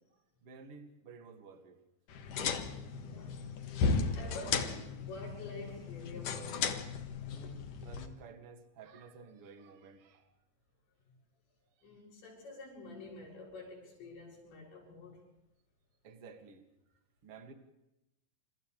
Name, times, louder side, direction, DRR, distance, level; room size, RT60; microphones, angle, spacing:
voice 1, 0.4-1.8 7.3-10.3 16.0-16.7 17.2-17.5, right 4 dB, 40° right, 2.4 m, -53 dB
sound 1, 2.1-8.1, left 5 dB, 55° left, 2.7 m, -35 dB
voice 2, 3.0-3.5 4.1-6.8 11.8-15.3, left 2 dB, 75° left, 9.7 m, -48 dB
29.5 x 28.5 x 3.4 m
omnidirectional pair, 5.1 m